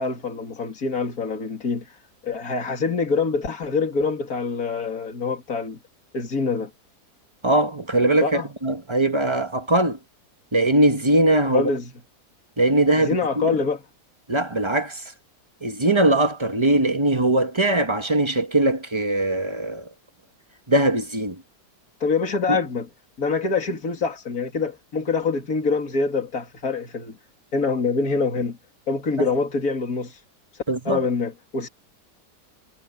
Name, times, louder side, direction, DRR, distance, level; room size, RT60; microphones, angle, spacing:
voice 1, 0.0-2.0 2.2-5.8 6.1-6.7 8.2-8.5 11.5-11.9 13.0-13.8 22.0-22.9 23.2-27.2 27.5-28.6 28.9-30.2 30.8-31.7, left 4 dB, 60° left, 3.1 m, -25 dB
voice 2, 7.4-10.0 10.5-11.7 12.6-13.2 14.3-15.0 15.6-19.9 20.7-21.4 30.7-31.0, right 1 dB, 20° right, 1.1 m, -21 dB
omnidirectional pair, 1.7 m